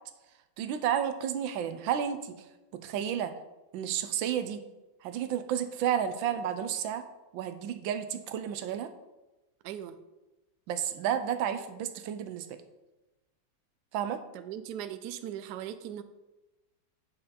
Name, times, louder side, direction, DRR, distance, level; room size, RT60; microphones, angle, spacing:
voice 1, 0.6-2.4 2.7-3.3 3.7-4.6 5.0-7.0 7.3-8.9 10.7-12.6 13.9-14.2, right 9 dB, 90° right, 9 dB, 1.4 m, -31 dB
voice 2, 9.6-10.0 14.3-16.0, right 10 dB, 70° right, 10 dB, 1.0 m, -39 dB
8.4 x 5.7 x 4.1 m, 1.0 s
omnidirectional pair, 2.0 m